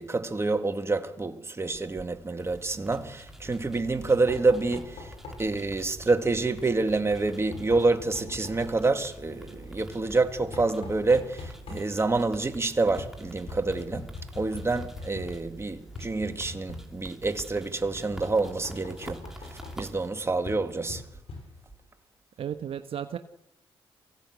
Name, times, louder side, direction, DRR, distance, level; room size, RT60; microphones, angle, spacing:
voice 1, 0.0-5.1 5.4-21.0, right 3 dB, 25° right, 2.1 m, -27 dB
sound 1, 2.4-20.1, right 1 dB, 5° right, 3.3 m, -47 dB
Knock, 3.4-21.9, left 3 dB, 70° left, 7.2 m, -44 dB
voice 2, 22.4-23.2, right 9 dB, 65° right, 1.1 m, -34 dB
24.0 x 16.5 x 8.2 m
supercardioid pair, 60°, 10 cm